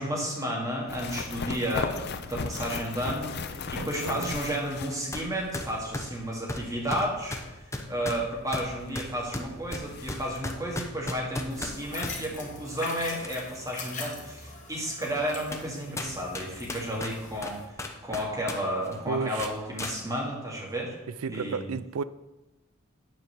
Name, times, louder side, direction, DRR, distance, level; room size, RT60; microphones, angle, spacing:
voice 1, 0.0-17.6 18.0-21.0 21.3-21.7, equal, 15° right, -2 dB, 2.1 m, -32 dB
sound 1, 0.9-5.5 5.8-5.9 8.9-9.0 9.3-9.4 9.7-10.4, left 4 dB, 50° left, 0.6 m, -36 dB
voice 2, 3.7-4.4 19.1-19.5 21.2-22.0, right 5 dB, 85° right, 16 dB, 0.4 m, -32 dB
sound 2, 5.1-5.3 5.5-12.2 12.8-13.6 14.0-14.1 14.8-14.9 15.5-15.7 16.0-18.6 18.8-19.0 19.4-19.9, left 1 dB, 15° left, 0.8 m, -36 dB
sound 3, 11.5-17.6, left 3 dB, 35° left, 1.8 m, -42 dB
9.4 x 4.6 x 7.1 m, 1.1 s
head